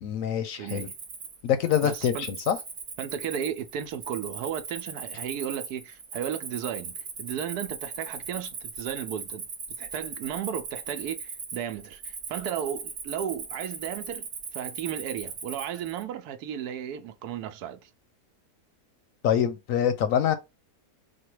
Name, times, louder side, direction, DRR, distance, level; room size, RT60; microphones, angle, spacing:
voice 1, 0.0-0.9 1.4-2.6 19.2-20.4, left 9 dB, 70° left, 0.9 m, -25 dB
voice 2, 0.6-0.9 1.8-2.3 3.0-9.5 9.8-17.9, right 9 dB, 80° right, 1.1 m, -34 dB
Cricket, 0.7-16.0, right 5 dB, 45° right, 1.2 m, -39 dB
4.4 x 2.2 x 4.6 m
omnidirectional pair, 1.7 m